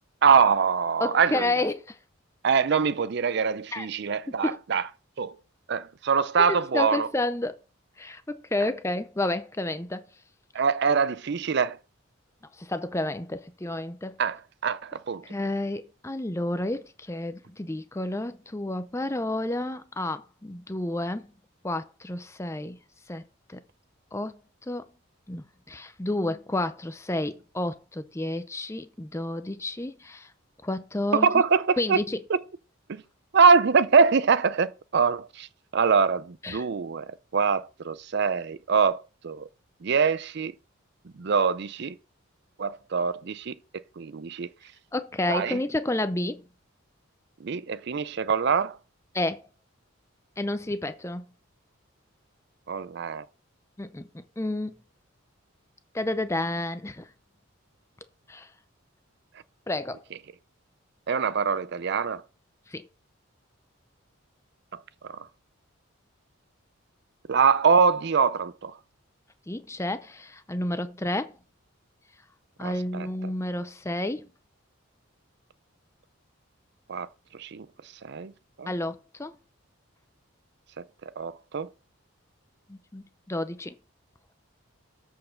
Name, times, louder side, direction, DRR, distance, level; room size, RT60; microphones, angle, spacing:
voice 1, 0.2-1.5 2.4-4.9 5.2-5.3 5.7-7.1 10.5-11.8 14.2-15.2 31.1-32.0 32.3-32.4 32.9-33.0 33.3-35.5 35.7-39.5 39.8-40.5 41.2-42.0 42.6-44.5 45.3-45.6 47.4-48.8 52.7-53.2 61.1-62.2 64.7-65.3 67.3-68.8 72.6-73.1 76.9-77.1 77.3-77.7 78.0-78.3 78.6-78.7 80.8-80.9 81.2-81.7, right 5 dB, 50° right, 0.4 m, -24 dB
voice 2, 1.0-2.0 3.7-3.9 4.4-4.6 6.5-7.6 8.0-10.1 12.6-14.2 15.2-21.3 21.6-22.8 23.1-23.2 23.5-23.6 24.1-24.8 25.3-30.3 30.6-31.4 31.8-32.2 36.4-36.7 44.9-46.4 49.1-49.4 50.4-51.2 53.8-54.8 55.9-57.1 58.3-58.5 59.7-60.0 62.7-62.9 69.5-71.4 72.6-74.3 78.7-79.3 82.7-83.7, left 1 dB, 15° left, 0.5 m, -30 dB
7.7 x 4.6 x 6.3 m
head